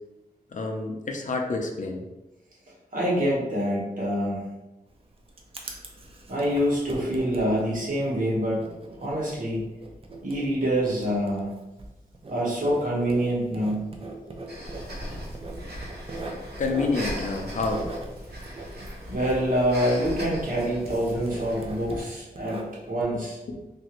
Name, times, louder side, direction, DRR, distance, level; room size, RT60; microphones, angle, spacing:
voice 1, 0.5-2.0 16.6-17.9 21.3-21.4 23.5-23.6, left 3 dB, 55° left, 2 dB, 0.4 m, -28 dB
voice 2, 2.9-4.4 6.3-8.6 9.0-9.6 10.2-11.5 12.3-13.9 19.1-23.4, equal, 60° right, -6 dB, 1.2 m, -26 dB
Writing, 4.9-20.2 20.5-23.0, right 2 dB, 35° right, 0.4 m, -41 dB
Breathing, 14.5-22.0, equal, 90° right, 0.7 m, -38 dB
2.9 x 2.5 x 2.9 m, 1.0 s
wide cardioid pair, 110°, 16 cm